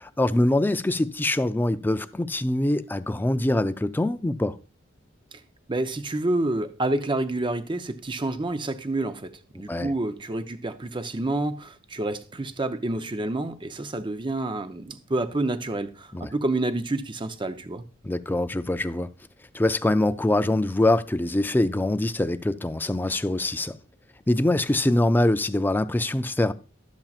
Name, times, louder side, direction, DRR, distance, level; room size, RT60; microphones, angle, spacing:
voice 1, 0.0-4.6 9.7-9.9 16.1-16.3 18.0-19.1 19.5-23.8 24.3-26.5, left 1 dB, 10° left, 0.3 m, -24 dB
voice 2, 5.7-17.8, right 2 dB, 25° right, 0.6 m, -28 dB
12.0 x 7.3 x 2.4 m
head